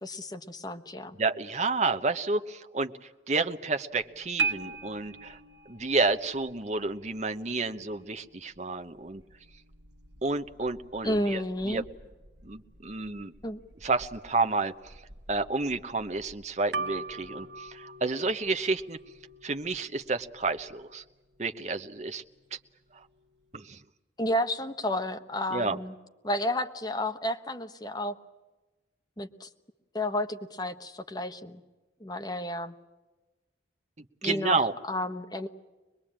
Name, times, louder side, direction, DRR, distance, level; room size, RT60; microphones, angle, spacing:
voice 1, 0.0-1.2 11.0-11.8 13.4-13.6 24.2-25.9 26.2-28.1 29.2-29.5 29.9-31.6 32.0-32.7 34.2-35.5, left 1 dB, 20° left, 6 dB, 1.2 m, -31 dB
voice 2, 1.1-2.9 3.3-5.4 5.7-9.2 10.2-11.4 11.7-11.8 12.4-13.3 13.8-14.7 15.3-19.0 19.4-21.0 21.4-22.2 23.5-23.8 25.5-25.8 34.0-34.7, right 3 dB, 40° right, 9 dB, 1.0 m, -30 dB
Paul Matisse' musical fence, 3.9-23.6, right 4 dB, 75° right, 1.3 m, -42 dB
24.0 x 21.5 x 8.8 m, 1.2 s
head